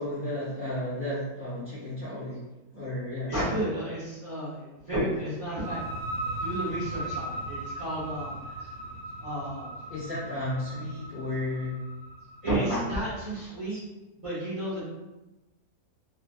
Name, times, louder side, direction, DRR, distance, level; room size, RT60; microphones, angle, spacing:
voice 1, 0.0-2.4 2.7-3.3 8.6-8.7 9.9-11.8 12.4-13.0 13.7-13.8, left 1 dB, 55° left, -9 dB, 0.6 m, -33 dB
voice 2, 3.3-5.8 6.1-8.7 9.2-9.8 12.4-13.8 14.2-14.8, right 1 dB, 30° right, -10 dB, 0.7 m, -32 dB
sound 1, 5.5-13.0, right 1 dB, 75° right, 1.0 m, -38 dB
2.6 x 2.4 x 2.2 m, 1.0 s
omnidirectional pair, 1.5 m